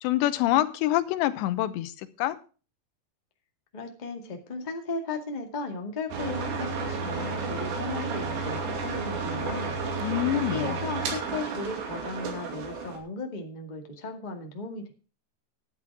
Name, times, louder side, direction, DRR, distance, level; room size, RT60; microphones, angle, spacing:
voice 1, 0.0-2.4 10.0-10.7, left 14 dB, 90° left, 3.2 m, -26 dB
voice 2, 3.7-9.8 10.3-14.9, left 3 dB, 30° left, 0.7 m, -36 dB
sound 1, 6.1-13.0, right 4 dB, 90° right, 4.8 m, -32 dB
11.0 x 11.0 x 4.8 m
omnidirectional pair, 4.9 m